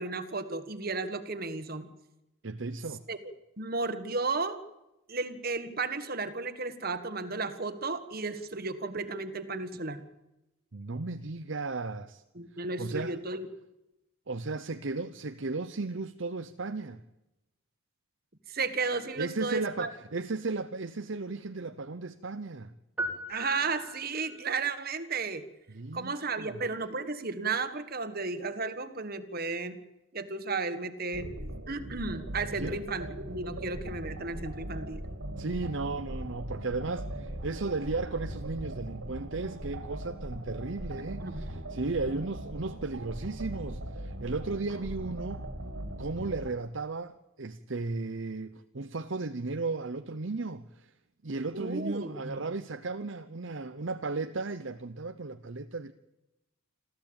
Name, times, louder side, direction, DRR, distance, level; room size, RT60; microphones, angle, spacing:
voice 1, 0.0-1.9 3.1-3.2 3.6-4.6 5.1-10.0 12.3-13.5 18.5-19.9 23.3-25.4 25.9-29.8 30.1-31.3 31.7-35.0 41.0-41.5 51.5-52.4, right 3 dB, 45° right, 1.7 m, -34 dB
voice 2, 2.4-3.0 10.7-12.2 12.8-13.2 14.3-17.0 19.2-22.7 25.7-26.6 32.6-32.8 35.4-45.4 46.0-50.9 51.2-55.9, right 3 dB, 60° right, 0.8 m, -35 dB
sound 1, 23.0-24.4, equal, 5° right, 2.6 m, -37 dB
sound 2, 31.1-46.5, right 1 dB, 90° right, 2.7 m, -39 dB
27.0 x 14.5 x 8.9 m
head